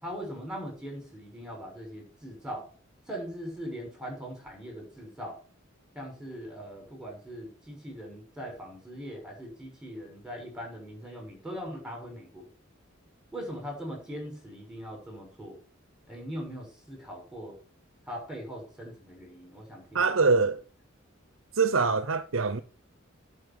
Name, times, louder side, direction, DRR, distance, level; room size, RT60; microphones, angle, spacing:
voice 1, 0.0-2.7 3.1-5.4 5.9-12.5 13.3-15.6 16.1-17.6 18.1-20.4, equal, 5° right, 6.3 m, -40 dB
voice 2, 19.9-20.6 21.6-22.6, right 4 dB, 75° right, 0.8 m, -24 dB
11.0 x 5.7 x 8.5 m
head